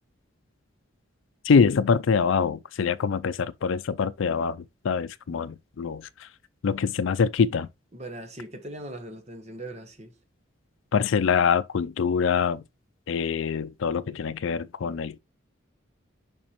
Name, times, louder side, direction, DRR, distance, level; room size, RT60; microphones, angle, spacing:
voice 1, 1.4-6.3 6.6-7.7 10.9-12.6 13.1-15.2, left 6 dB, 80° left, 0.4 m, -24 dB
voice 2, 7.9-10.1, right 1 dB, 35° right, 1.1 m, -40 dB
7.1 x 5.3 x 3.0 m
head